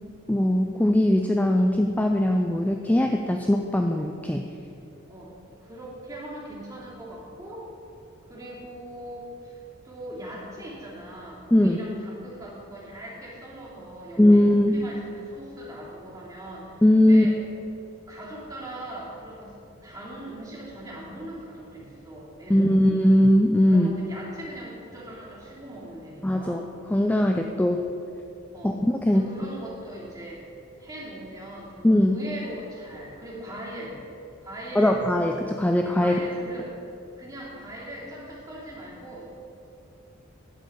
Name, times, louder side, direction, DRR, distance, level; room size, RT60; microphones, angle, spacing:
voice 1, 0.3-4.5 11.5-11.8 14.2-14.9 16.8-17.3 22.5-23.9 26.2-26.6 26.9-27.8 28.6-29.3 31.8-32.2 34.8-36.2, left 1 dB, 5° left, 3 dB, 0.4 m, -20 dB
voice 2, 5.6-7.6 8.3-9.6 9.8-17.4 18.1-19.5 19.8-22.8 23.7-26.6 28.5-28.8 29.1-30.4 30.8-34.0 34.4-35.0 36.0-36.8 37.2-39.2, right 1 dB, 20° right, -6 dB, 2.9 m, -40 dB
11.5 x 5.3 x 8.0 m, 2.7 s
head